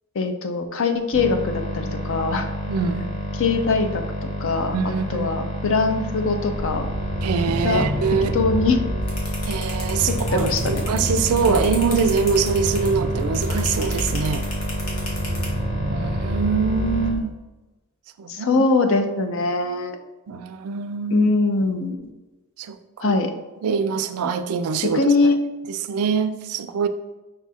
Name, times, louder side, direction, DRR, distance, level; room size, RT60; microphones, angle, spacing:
voice 1, 0.2-2.5 3.3-6.9 7.6-7.9 8.3-8.8 10.1-10.8 11.5-11.6 18.3-20.0 21.1-22.0 23.0-23.3 24.8-25.4, left 3 dB, 60° left, 7 dB, 0.5 m, -22 dB
sound 1, 1.1-17.1, equal, 35° left, 1.0 m, -29 dB
voice 2, 2.7-3.1 4.7-5.5 7.2-8.4 9.4-14.4 15.9-17.4 18.2-18.6 20.3-21.3 22.6-23.2 23.6-25.0 25.7-26.9, right 5 dB, 75° right, 10 dB, 0.3 m, -24 dB
sound 2, 6.5-17.2, equal, 5° right, 0.5 m, -29 dB
sound 3, 9.1-15.5, left 2 dB, 80° left, 1.2 m, -34 dB
5.3 x 2.4 x 4.1 m, 1.1 s
head